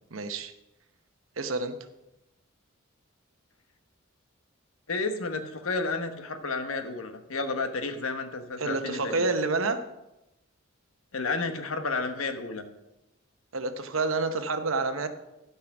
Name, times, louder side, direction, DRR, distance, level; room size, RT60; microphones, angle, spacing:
voice 1, 0.1-0.5 1.4-1.7 8.6-9.8 13.5-15.1, right 3 dB, 75° right, 8 dB, 0.9 m, -28 dB
voice 2, 4.9-9.3 11.1-12.7, left 3 dB, 90° left, 7 dB, 1.1 m, -31 dB
12.0 x 5.7 x 5.9 m, 0.94 s
head